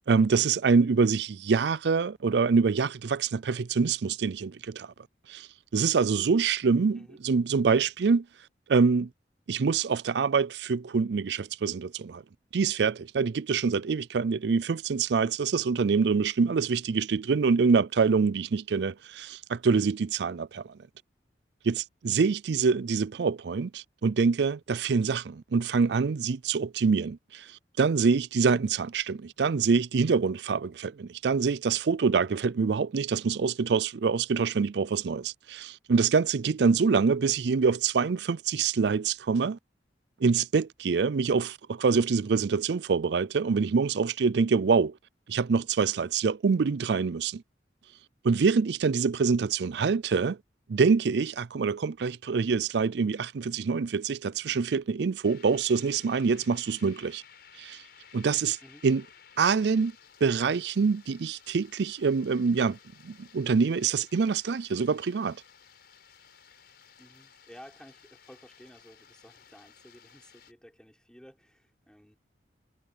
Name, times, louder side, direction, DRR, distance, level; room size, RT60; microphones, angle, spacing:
voice 1, 0.1-4.9 5.3-8.3 8.7-9.1 9.5-12.2 12.5-20.7 21.6-27.5 27.8-39.6 40.2-44.9 45.3-47.4 48.2-50.4 50.7-57.2 57.6-57.8 58.1-58.6 58.8-59.0 59.4-59.9 60.2-62.8 63.0-65.4, right 5 dB, 65° right, 0.4 m, -25 dB
sound 1, 55.2-70.5, left 7 dB, 60° left, 6.0 m, -56 dB
voice 2, 67.0-72.2, equal, 5° left, 5.9 m, -53 dB
head